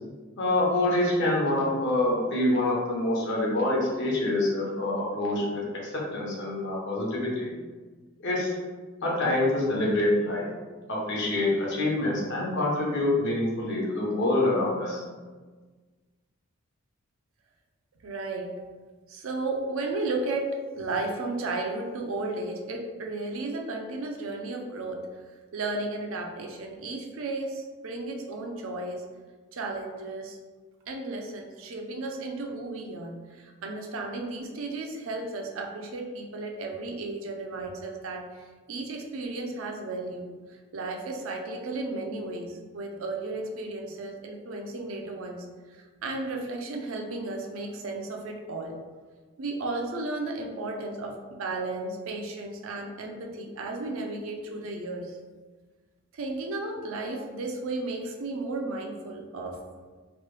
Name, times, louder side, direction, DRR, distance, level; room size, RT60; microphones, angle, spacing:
voice 1, 0.4-7.5 8.2-8.6 9.0-10.5 10.9-15.0, left 1 dB, 55° left, -4 dB, 0.8 m, -26 dB
voice 2, 18.0-18.6 19.1-25.0 25.5-29.0 29.5-30.4 30.9-40.2 40.5-48.7 49.4-55.2 56.1-59.6, right 2 dB, 70° right, 2 dB, 0.4 m, -34 dB
3.1 x 2.2 x 3.1 m, 1.4 s
head